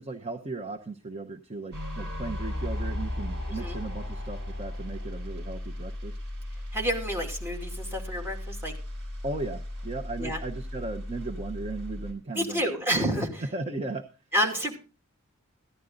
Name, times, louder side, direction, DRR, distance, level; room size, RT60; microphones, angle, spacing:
voice 1, 0.0-6.1 9.2-12.6 13.5-14.0, right 3 dB, 30° right, 4 dB, 0.9 m, -36 dB
sound 1, 1.7-12.1, left 1 dB, 50° right, 5.2 m, -36 dB
voice 2, 6.7-8.7 10.2-10.4 12.3-13.4 14.3-14.8, equal, 10° right, 2 dB, 2.7 m, -29 dB
15.5 x 11.0 x 3.9 m, 0.33 s
head